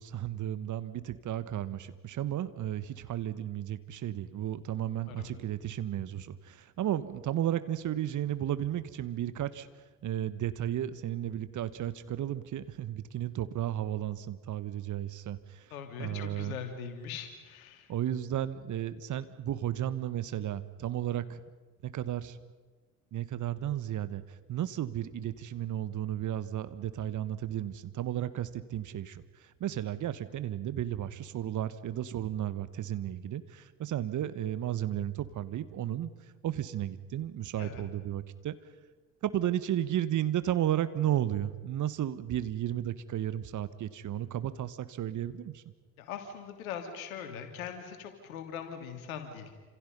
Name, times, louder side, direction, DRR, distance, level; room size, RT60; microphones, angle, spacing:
voice 1, 0.0-9.7 10.0-15.7 16.0-16.6 17.9-21.4 21.8-22.4 23.1-24.2 24.5-36.1 36.4-38.6 39.2-45.6, right 11 dB, 45° right, 14 dB, 1.4 m, -33 dB
voice 2, 15.7-17.9 37.6-37.8 46.0-49.6, left 7 dB, 75° left, 5 dB, 3.2 m, -41 dB
29.0 x 27.0 x 5.5 m, 1.3 s
figure-of-eight pair, 55°, 42 cm